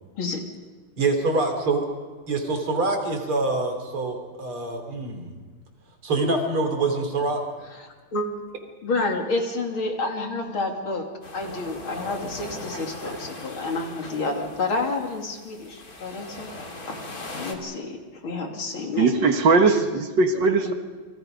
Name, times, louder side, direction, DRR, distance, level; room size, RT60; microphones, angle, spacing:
voice 1, 1.0-1.8 2.3-5.3 6.0-7.4, right 3 dB, 85° right, 4 dB, 4.3 m, -25 dB
voice 2, 7.8-8.3 8.8-11.0 11.3-17.0 17.3-19.3 20.3-20.7, left 3 dB, 75° left, 2 dB, 3.6 m, -29 dB
sound 1, 11.2-17.6, left 2 dB, 45° left, 3.1 m, -39 dB
voice 3, 19.0-20.7, right 4 dB, 60° right, 6 dB, 2.1 m, -19 dB
28.5 x 24.0 x 5.3 m, 1.4 s
omnidirectional pair, 2.3 m